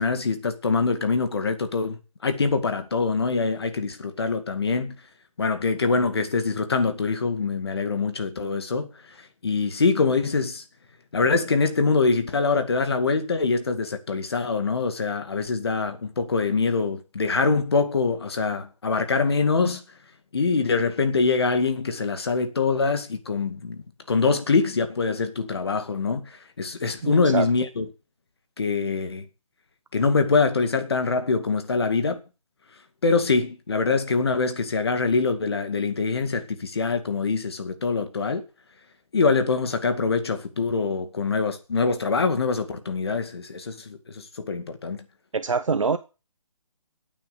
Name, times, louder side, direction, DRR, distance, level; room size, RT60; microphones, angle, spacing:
voice 1, 0.0-4.9 5.4-8.9 9.4-10.6 11.1-19.8 20.3-23.8 24.1-27.9 28.6-29.3 29.9-32.2 33.0-38.4 39.1-45.0, left 4 dB, 45° left, 2.2 m, -24 dB
voice 2, 27.0-27.5 45.3-46.0, right 5 dB, 60° right, 1.2 m, -25 dB
14.0 x 9.0 x 6.9 m
hypercardioid pair, 180°, 19 cm